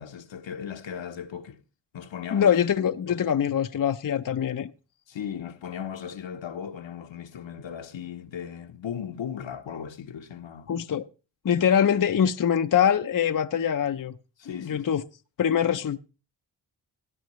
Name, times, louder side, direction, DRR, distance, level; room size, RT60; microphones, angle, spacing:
voice 1, 0.0-1.6 1.9-2.6 3.1-3.2 5.1-10.7 14.4-14.9, left 8 dB, 70° left, 1.1 m, -37 dB
voice 2, 2.3-4.7 10.7-11.1 11.4-14.1 14.6-15.0 15.4-16.0, left 8 dB, 45° left, 0.7 m, -23 dB
17.0 x 9.0 x 3.1 m
cardioid pair, 40°, 46 cm